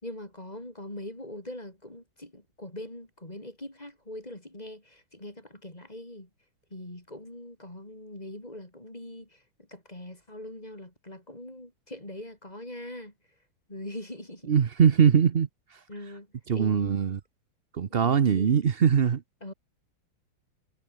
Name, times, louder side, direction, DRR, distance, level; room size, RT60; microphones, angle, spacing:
voice 1, 0.0-6.3 6.7-9.4 9.7-13.1 13.7-14.5 15.9-16.3 16.5-17.0 18.0-18.6 19.4-19.5, left 1 dB, 15° left, 4.7 m, -42 dB
voice 2, 14.5-15.8 16.5-17.2 17.7-19.2, right 7 dB, 85° right, 0.5 m, -22 dB
omnidirectional pair, 2.4 m